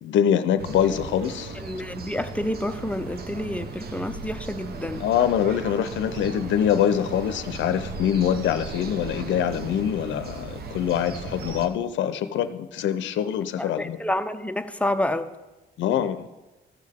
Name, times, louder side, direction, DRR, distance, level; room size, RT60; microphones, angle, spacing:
voice 1, 0.0-1.6 5.0-14.0 15.8-16.3, left 9 dB, 70° left, 11 dB, 0.6 m, -24 dB
sound 1, 0.6-11.7, right 4 dB, 50° right, 1.0 m, -37 dB
voice 2, 1.6-5.0 13.6-15.3, left 1 dB, 5° left, 9 dB, 0.6 m, -29 dB
14.0 x 6.5 x 3.6 m, 1.1 s
cardioid pair, 90°, 20 cm